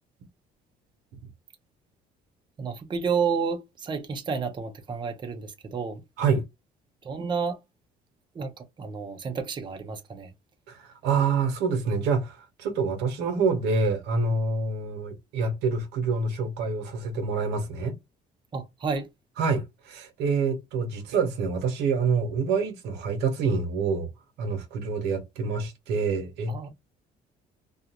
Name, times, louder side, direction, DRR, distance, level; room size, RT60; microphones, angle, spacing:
voice 1, 2.6-6.0 7.0-7.6 8.3-10.3 18.5-19.1 26.5-26.7, right 5 dB, 25° right, 0.6 m, -30 dB
voice 2, 10.7-17.9 19.4-24.1 24.4-26.7, right 4 dB, 90° right, 0.9 m, -27 dB
2.4 x 2.3 x 2.8 m
cardioid pair, 110°, 17 cm